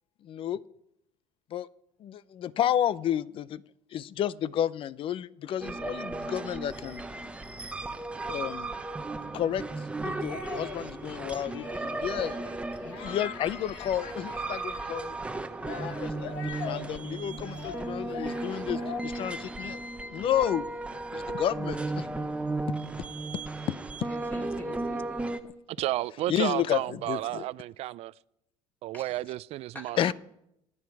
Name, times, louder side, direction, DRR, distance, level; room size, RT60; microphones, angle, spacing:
voice 1, 0.2-0.6 1.5-1.7 2.0-3.6 3.9-7.0 8.2-8.7 9.3-12.4 12.8-15.2 15.7-16.4 16.6-19.8 20.1-20.7 21.1-22.1 23.0-23.1 24.0-24.1 26.3-27.4 30.0-30.1, left 10 dB, 45° left, 0.6 m, -31 dB
sound 1, 5.6-25.4, right 2 dB, 10° right, 0.9 m, -35 dB
sound 2, 10.3-11.0 11.4-15.0 15.6-19.0, left 7 dB, 85° left, 1.8 m, -42 dB
Wind instrument woodwind instrument, 18.2-23.0, right 7 dB, 25° right, 1.6 m, -57 dB
voice 2, 24.0-25.4 28.9-29.1 29.7-30.1, equal, 15° left, 2.6 m, -45 dB
voice 3, 25.7-28.1 28.8-30.1, right 15 dB, 60° right, 0.5 m, -32 dB
28.0 x 9.7 x 4.7 m
cardioid pair, 130°, 12 cm